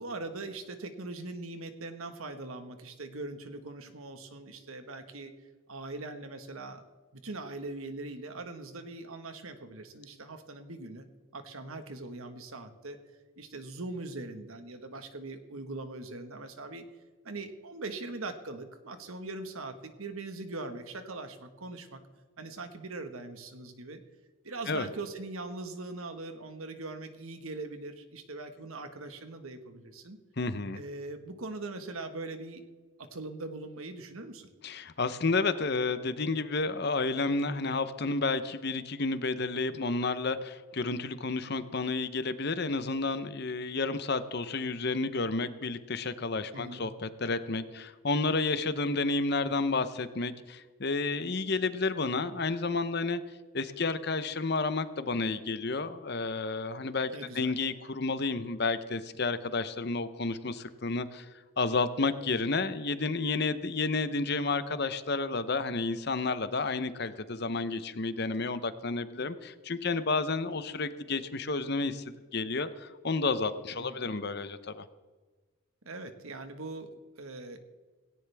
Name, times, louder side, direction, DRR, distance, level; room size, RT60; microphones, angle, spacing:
voice 1, 0.0-5.3 5.7-6.8 7.2-11.0 11.3-13.0 13.4-16.9 17.2-22.0 22.4-24.0 24.4-30.2 30.7-32.6 33.0-34.5 46.5-46.8 57.1-57.6 73.8-74.0 75.8-77.6, right 2 dB, 80° right, 7 dB, 1.5 m, -41 dB
voice 2, 30.4-30.8 34.6-53.2 53.5-61.3 61.6-72.0 72.3-74.8, left 3 dB, 50° left, 12 dB, 0.8 m, -31 dB
17.5 x 17.0 x 3.5 m, 1.3 s
head